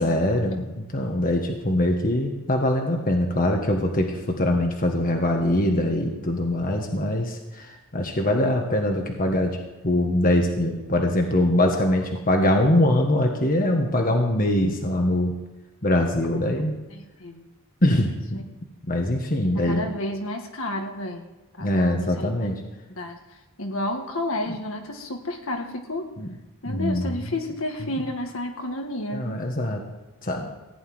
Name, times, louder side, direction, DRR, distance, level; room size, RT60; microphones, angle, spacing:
voice 1, 0.0-9.6 9.8-15.3 15.8-16.7 17.8-18.4 18.9-19.8 21.6-22.6 26.2-26.3 26.7-27.2 27.8-27.9 29.1-29.8 30.2-30.5, left 1 dB, 40° left, 2 dB, 1.5 m, -23 dB
voice 2, 16.9-17.5 18.3-18.4 19.4-21.3 21.6-22.3 22.9-23.2 23.6-26.1 26.6-29.4, left 1 dB, 65° left, 3 dB, 1.9 m, -31 dB
15.5 x 5.5 x 9.5 m, 1.1 s
head